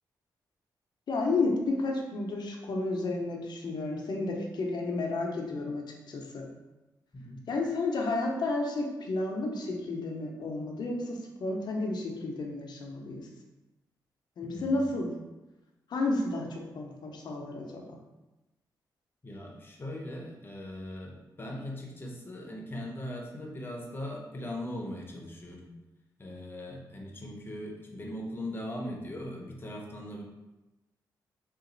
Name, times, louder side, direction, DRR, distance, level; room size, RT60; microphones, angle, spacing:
voice 1, 1.1-6.5 7.5-13.2 14.4-15.1 15.9-17.8, left 2 dB, 65° left, 1 dB, 0.8 m, -31 dB
voice 2, 14.4-15.0 19.2-25.7 26.2-30.2, left 1 dB, 30° left, -1 dB, 0.8 m, -40 dB
3.9 x 2.5 x 3.9 m, 1.0 s
cardioid pair, 100°, 8 cm